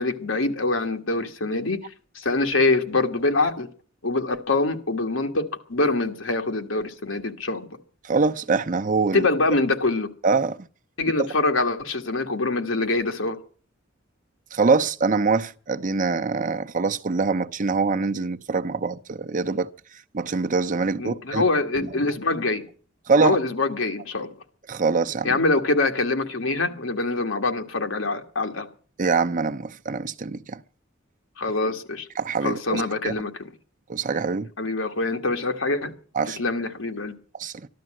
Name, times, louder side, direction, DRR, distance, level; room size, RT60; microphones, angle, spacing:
voice 1, 0.0-1.8 2.1-3.7 4.0-7.7 9.1-10.1 11.0-13.4 21.0-22.6 23.2-24.3 25.2-28.7 31.4-32.1 32.4-33.5 34.6-35.9 36.4-37.1, left 2 dB, 90° left, 1.8 m, -24 dB
voice 2, 8.0-9.3 10.2-10.6 14.5-19.7 20.1-21.4 21.8-21.9 23.1-23.4 24.7-25.4 29.0-30.6 32.2-33.1 33.9-34.5 36.1-36.4 37.3-37.7, right 4 dB, 40° right, 0.7 m, -24 dB
14.0 x 12.5 x 7.6 m
head